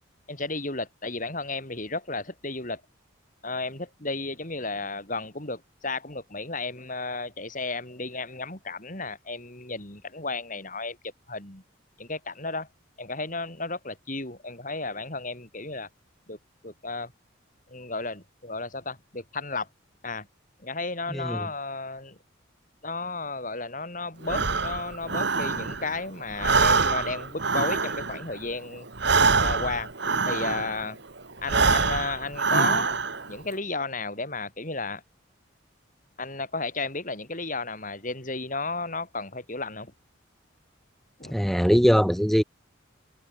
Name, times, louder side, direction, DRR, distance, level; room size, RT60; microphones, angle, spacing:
voice 1, 0.3-2.8 3.4-11.0 11.3-11.6 12.0-12.7 13.0-15.9 16.3-16.4 16.6-17.1 17.7-19.7 20.0-20.3 20.6-22.2 22.8-28.9 29.3-29.9 30.2-31.0 31.4-32.9 33.3-35.0 36.2-39.9 41.2-41.4, left 3 dB, 40° left, 5.1 m, -33 dB
voice 2, 21.1-21.5 41.3-42.4, equal, ahead, 2.7 m, -21 dB
Breathing, 24.2-26.0 26.3-30.9 31.4-33.3, right 4 dB, 55° right, 1.7 m, -25 dB
head